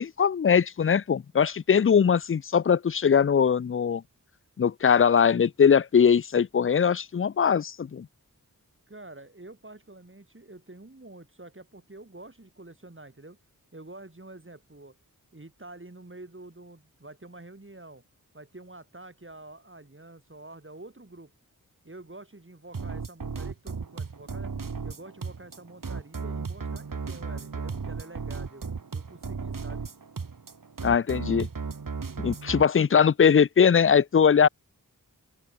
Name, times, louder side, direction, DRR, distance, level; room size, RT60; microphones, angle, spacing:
voice 1, 0.0-4.0 4.6-8.1 30.8-31.5 32.2-34.5, left 7 dB, 40° left, 0.4 m, -21 dB
voice 2, 8.9-13.4 13.7-15.0 15.3-18.0 18.3-21.3 21.8-24.5 24.8-28.7 28.9-29.9, right 2 dB, 35° right, 7.4 m, -47 dB
sound 1, 22.7-32.6, right 5 dB, 65° right, 1.9 m, -35 dB
open air
wide cardioid pair, 55°, 35 cm